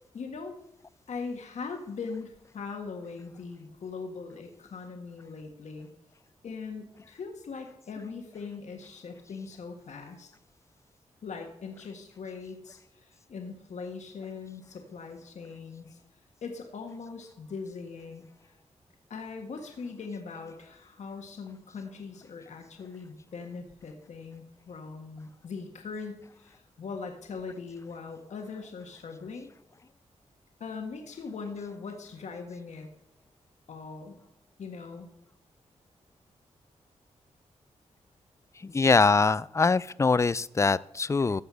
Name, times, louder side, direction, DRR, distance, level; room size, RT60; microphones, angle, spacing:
voice 1, 0.1-0.6 1.1-5.9 6.4-10.3 11.2-16.0 16.4-18.2 19.1-29.5 30.6-32.9 33.7-34.2 34.6-35.1, left 4 dB, 70° left, 3 dB, 1.7 m, -40 dB
voice 2, 38.6-41.4, left 4 dB, 25° left, 20 dB, 0.4 m, -23 dB
15.0 x 5.2 x 6.3 m, 0.83 s
cardioid pair, 65°, 12 cm